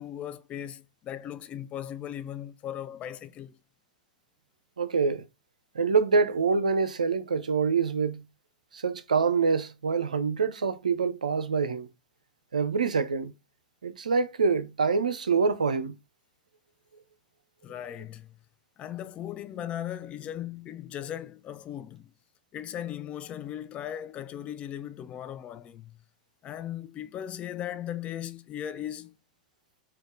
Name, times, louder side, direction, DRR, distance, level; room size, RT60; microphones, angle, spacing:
voice 1, 0.0-3.6 17.6-18.3 18.8-22.1 22.5-26.0 26.4-29.1, left 10 dB, 30° left, 0.4 m, -38 dB
voice 2, 4.8-5.2 5.7-8.2 8.7-11.9 12.5-13.3 13.8-16.0, right 5 dB, 80° right, 0.4 m, -26 dB
4.1 x 2.3 x 3.1 m
figure-of-eight pair, 90°, 4 cm